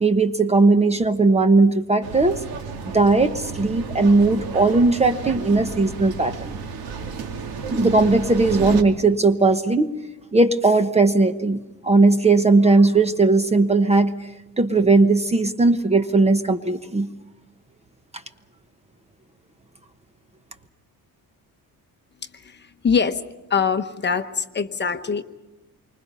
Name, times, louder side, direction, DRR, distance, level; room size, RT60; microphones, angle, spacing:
voice 1, 0.0-2.4 2.9-6.6 7.7-9.9 10.3-14.1 14.6-17.1, right 3 dB, 20° right, 10 dB, 1.0 m, -18 dB
sound 1, 2.0-8.8, right 5 dB, 85° right, 2.4 m, -32 dB
voice 2, 22.4-23.2 23.5-25.2, left 6 dB, 30° left, 8 dB, 1.1 m, -23 dB
28.0 x 25.0 x 5.6 m, 1.0 s
cardioid pair, 135°, 35 cm